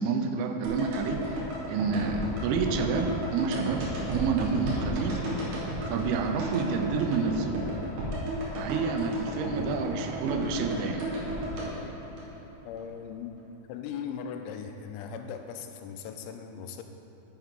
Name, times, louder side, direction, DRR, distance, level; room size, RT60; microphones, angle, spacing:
voice 1, 0.0-5.2 5.9-7.7 8.5-11.1, right 5 dB, 85° right, 5 dB, 3.0 m, -29 dB
sound 1, 0.6-12.8 13.1-13.2, right 1 dB, 60° right, 2.2 m, -33 dB
voice 2, 12.6-16.8, left 7 dB, 90° left, 6 dB, 3.0 m, -39 dB
9.5 x 7.5 x 3.8 m, 2.9 s
omnidirectional pair, 5.2 m